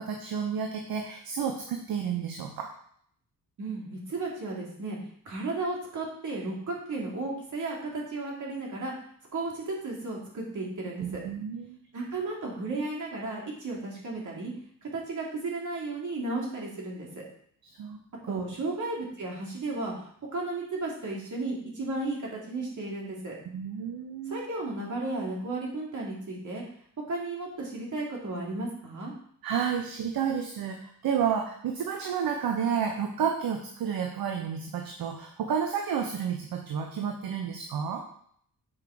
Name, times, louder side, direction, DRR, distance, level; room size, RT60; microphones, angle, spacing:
voice 1, 0.0-2.7 11.0-11.8 17.6-18.0 18.3-18.4 23.5-24.4 29.4-38.0, right 7 dB, 70° right, 4 dB, 0.9 m, -31 dB
voice 2, 3.6-5.0 5.2-8.9 9.3-11.2 11.9-14.5 14.8-17.2 18.3-19.9 20.3-23.3 24.3-26.6 27.1-29.1, right 2 dB, 55° right, -3 dB, 2.8 m, -34 dB
7.5 x 4.8 x 4.7 m, 0.64 s
cardioid pair, 95°, 37 cm